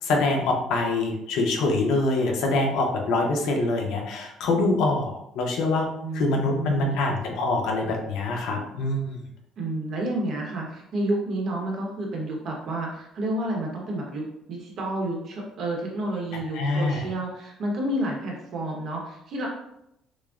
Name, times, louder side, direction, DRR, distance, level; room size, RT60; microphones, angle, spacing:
voice 1, 0.0-5.9 6.1-9.2 16.5-17.1, left 2 dB, 70° left, 1 dB, 0.7 m, -25 dB
voice 2, 6.0-7.0 9.6-19.5, right 1 dB, 45° right, -1 dB, 0.9 m, -30 dB
6.1 x 2.1 x 2.4 m, 0.81 s
cardioid pair, 175°, 0 cm